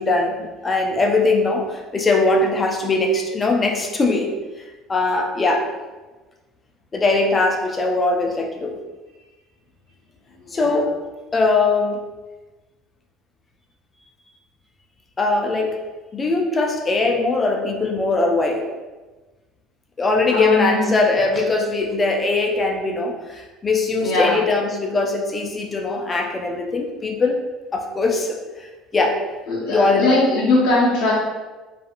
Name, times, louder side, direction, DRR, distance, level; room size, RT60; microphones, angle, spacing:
voice 1, 0.0-5.7 6.9-8.7 10.5-11.0 11.3-12.1 15.2-15.8 16.1-18.7 20.0-27.4 27.7-29.3 29.7-30.1, left 3 dB, 25° left, 2 dB, 0.4 m, -21 dB
voice 2, 10.4-10.8 20.3-20.9 24.0-24.4 29.5-31.1, left 2 dB, 80° left, -6 dB, 0.5 m, -20 dB
2.7 x 2.4 x 2.5 m, 1.2 s
supercardioid pair, 105°, 0 cm